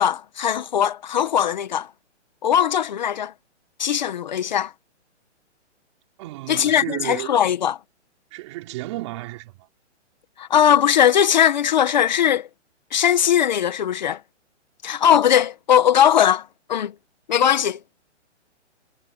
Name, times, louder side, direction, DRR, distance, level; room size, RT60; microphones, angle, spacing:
voice 1, 0.0-1.9 2.4-3.3 3.8-4.7 6.5-7.8 10.4-12.5 12.9-14.2 14.8-16.9 17.3-17.8, left 9 dB, 40° left, 1.7 m, -19 dB
voice 2, 6.2-7.4 8.3-9.7, right 19 dB, 25° right, 5.6 m, -33 dB
hypercardioid pair, 175°, 36 cm